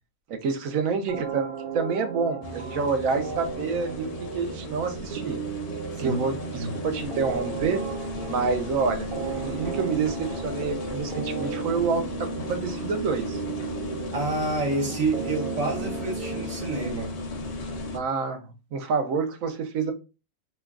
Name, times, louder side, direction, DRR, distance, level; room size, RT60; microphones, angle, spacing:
voice 1, 0.3-5.4 6.0-7.8 8.3-13.4 17.9-19.9, right 5 dB, 90° right, 6 dB, 1.1 m, -28 dB
sound 1, 1.1-17.1, right 6 dB, 55° right, 0.6 m, -35 dB
sound 2, 2.4-18.0, left 2 dB, 80° left, 0.3 m, -35 dB
voice 2, 14.1-17.1, right 3 dB, 75° right, -1 dB, 1.3 m, -28 dB
3.0 x 2.2 x 3.5 m, 0.30 s
omnidirectional pair, 1.4 m